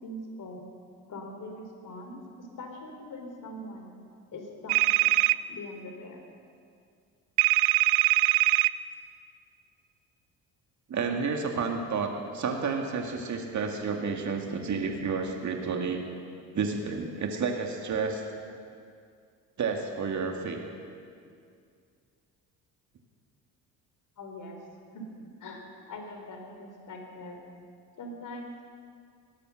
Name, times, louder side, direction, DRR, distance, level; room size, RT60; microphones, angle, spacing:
voice 1, 0.0-0.6 1.1-3.9 4.3-5.1 5.5-6.2 24.2-24.6 24.9-27.4 28.0-28.5, left 1 dB, 50° left, 2 dB, 4.0 m, -42 dB
sound 1, 4.7-5.4 7.4-8.7, right 20 dB, 85° right, 0.5 m, -22 dB
voice 2, 10.9-16.0 16.5-18.2 19.6-20.6, right 5 dB, 45° right, 3 dB, 2.1 m, -30 dB
18.0 x 12.5 x 6.4 m, 2.3 s
supercardioid pair, 80°, 39 cm